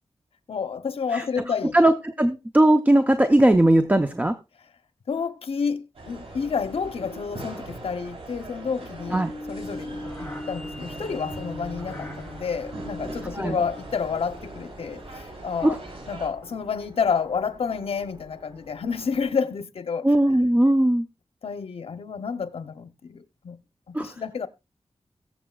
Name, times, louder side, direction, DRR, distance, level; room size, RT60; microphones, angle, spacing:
voice 1, 0.5-1.8 5.1-9.2 9.5-15.8 16.1-20.1 21.4-23.6 23.9-24.5, left 6 dB, 75° left, 0.8 m, -30 dB
voice 2, 1.7-4.3 9.1-9.3 13.3-13.6 15.6-15.8 20.0-21.1 23.9-24.1, right 1 dB, 15° right, 0.7 m, -19 dB
sound 1, 5.9-16.3, right 2 dB, 85° right, 5.1 m, -41 dB
sound 2, 9.0-15.4, left 1 dB, 5° left, 3.2 m, -39 dB
sound 3, 9.6-19.3, right 1 dB, 60° right, 7.1 m, -50 dB
21.5 x 7.4 x 2.3 m
wide cardioid pair, 115°, 10 cm